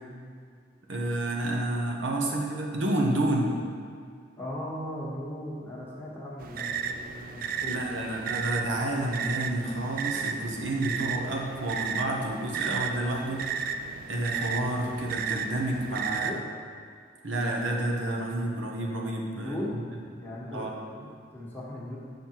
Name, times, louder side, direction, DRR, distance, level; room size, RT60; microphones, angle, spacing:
voice 1, 0.9-3.6 7.7-13.5 14.1-16.3 17.2-19.8 20.5-20.7, right 1 dB, 75° right, 0 dB, 1.1 m, -30 dB
voice 2, 4.4-8.2 15.9-16.4 19.4-19.8 20.1-22.0, left 1 dB, 10° left, -6 dB, 1.4 m, -38 dB
sound 1, 6.4-16.4, right 6 dB, 45° right, 0.3 m, -34 dB
7.4 x 5.6 x 4.6 m, 2.2 s
head